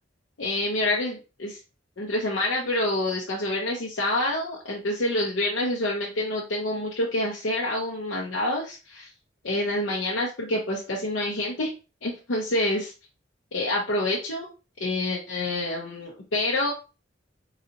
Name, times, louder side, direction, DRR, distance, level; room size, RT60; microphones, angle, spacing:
voice 1, 0.4-1.6 2.0-9.1 9.4-11.7 12.0-12.9 13.5-14.5 14.8-16.7, left 1 dB, 85° left, -4 dB, 0.8 m, -27 dB
3.9 x 2.9 x 2.6 m, 0.31 s
head